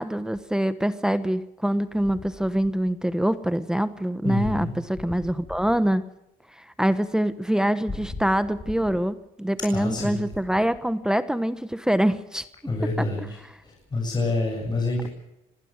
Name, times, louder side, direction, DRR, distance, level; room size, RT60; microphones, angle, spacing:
voice 1, 0.0-6.0 6.8-12.4, right 1 dB, 5° right, 12 dB, 1.1 m, -24 dB
voice 2, 4.2-4.8 9.7-10.2 12.6-15.1, left 2 dB, 25° left, 0 dB, 7.4 m, -27 dB
25.5 x 18.5 x 6.5 m, 0.88 s
cardioid pair, 110°, 17 cm